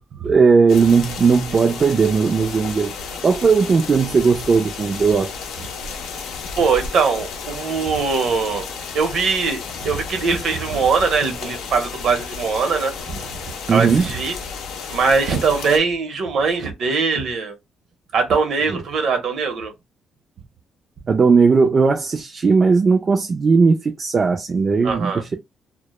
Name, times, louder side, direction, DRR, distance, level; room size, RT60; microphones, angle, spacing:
voice 1, 0.2-2.9 3.2-5.3 13.7-14.1 18.7-18.8 21.1-25.3, right 5 dB, 40° right, 0.3 m, -17 dB
sound 1, 0.7-15.8, left 5 dB, 90° left, 0.5 m, -33 dB
voice 2, 6.6-8.7 8.9-13.3 13.7-14.4 14.9-17.6 18.1-19.7 24.8-25.2, right 5 dB, 65° right, 0.7 m, -21 dB
2.1 x 2.0 x 2.9 m
cardioid pair, 90°, 0 cm